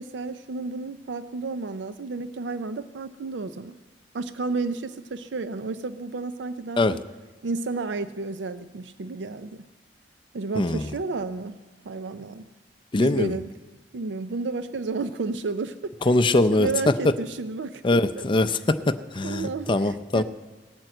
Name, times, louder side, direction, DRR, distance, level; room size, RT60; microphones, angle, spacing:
voice 1, 0.0-3.8 4.1-6.8 7.4-9.7 10.3-11.6 11.8-12.5 13.0-13.5 13.9-15.9 16.3-18.2 19.2-20.2, right 3 dB, 75° right, 12 dB, 0.5 m, -32 dB
voice 2, 10.6-10.9 12.9-13.3 16.0-16.7 17.0-17.1 17.8-20.2, left 2 dB, 30° left, 10 dB, 0.5 m, -22 dB
17.5 x 9.2 x 7.7 m, 1.2 s
head